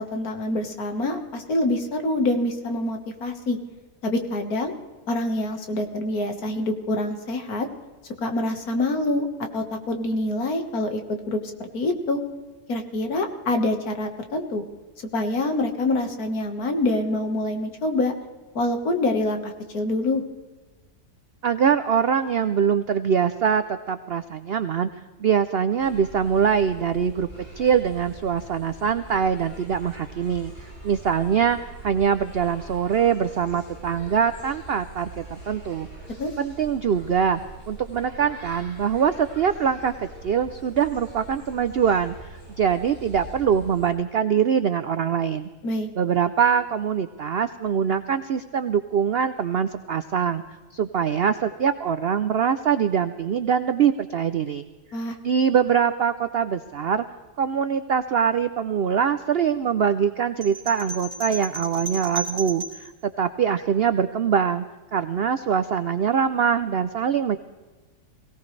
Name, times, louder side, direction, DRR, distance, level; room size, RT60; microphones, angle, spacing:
voice 1, 0.0-3.6 4.0-4.7 5.1-7.7 8.2-9.3 9.5-12.2 12.7-14.6 15.1-18.1 18.6-20.2 36.2-36.3 45.6-45.9 54.9-55.2, left 2 dB, 65° left, 5 dB, 2.0 m, -26 dB
voice 2, 21.4-24.9 25.2-27.3 27.6-35.9 36.4-37.4 37.7-45.5 46.0-50.4 50.7-54.7 55.2-57.0 57.4-64.6 64.9-67.4, right 7 dB, 85° right, 11 dB, 0.5 m, -23 dB
sound 1, 25.8-43.9, right 1 dB, 35° left, 7.5 m, -43 dB
sound 2, 60.4-62.9, right 2 dB, 50° right, 3.0 m, -34 dB
22.5 x 17.5 x 3.2 m, 1.3 s
omnidirectional pair, 1.8 m